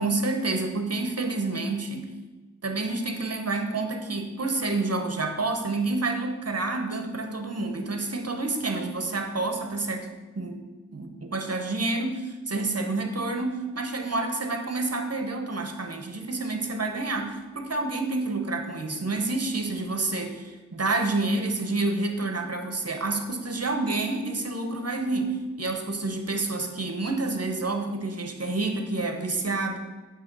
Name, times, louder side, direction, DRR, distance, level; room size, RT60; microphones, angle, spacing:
voice 1, 0.0-2.1 2.6-10.6 10.9-29.8, right 3 dB, 50° right, 5 dB, 0.9 m, -29 dB
8.3 x 3.0 x 6.0 m, 1.2 s
wide cardioid pair, 40°, 31 cm